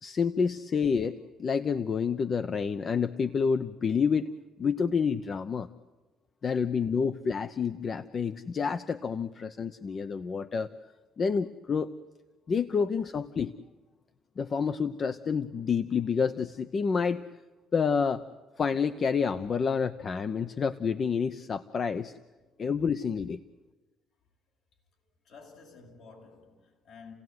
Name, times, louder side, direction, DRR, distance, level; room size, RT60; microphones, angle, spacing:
voice 1, 0.0-4.3 4.6-5.7 6.4-10.7 11.2-11.9 12.5-13.5 14.4-17.2 17.7-18.2 18.6-22.1 22.6-23.4, left 6 dB, 40° left, 0.8 m, -28 dB
voice 2, 24.9-27.1, left 4 dB, 70° left, 7.5 m, -52 dB
29.5 x 17.0 x 9.5 m
cardioid pair, 110°, 0 cm